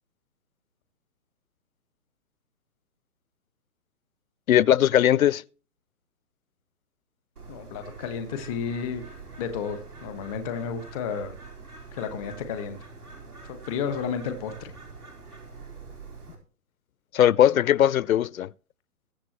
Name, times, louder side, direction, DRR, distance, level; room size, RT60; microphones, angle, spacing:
voice 1, 4.5-5.4 17.1-18.5, left 11 dB, 65° left, 0.5 m, -19 dB
Bird, 7.4-16.4, right 4 dB, 85° right, 4.5 m, -45 dB
voice 2, 7.5-9.0 9.4-11.4 11.9-12.8 13.4-14.7, left 6 dB, 5° right, 0.4 m, -32 dB
21.5 x 7.3 x 3.0 m
figure-of-eight pair, 135°, 44 cm